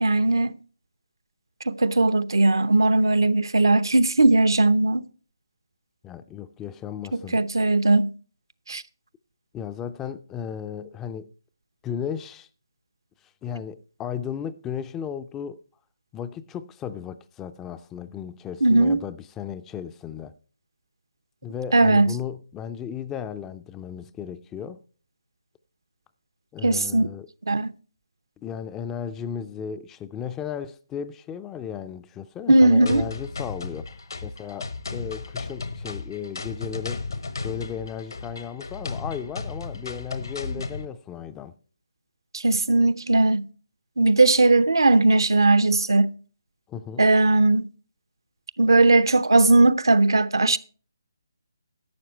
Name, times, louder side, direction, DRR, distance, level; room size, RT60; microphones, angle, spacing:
voice 1, 0.0-0.6 1.7-5.1 7.1-8.1 8.7-8.8 18.6-19.0 21.7-22.1 26.6-27.1 27.5-27.7 32.5-33.1 42.3-43.4 44.0-46.1 47.0-47.7 48.6-50.6, right 2 dB, 75° right, 0.7 m, -18 dB
voice 2, 6.0-7.4 9.5-11.3 11.8-12.5 13.4-15.6 16.1-20.3 21.4-24.8 26.5-27.3 28.4-37.0 37.4-41.5 46.7-47.1, left 8 dB, 10° left, 0.4 m, -35 dB
sound 1, 32.9-40.9, left 3 dB, 70° left, 1.2 m, -34 dB
11.5 x 7.7 x 4.4 m
figure-of-eight pair, 155°, 2 cm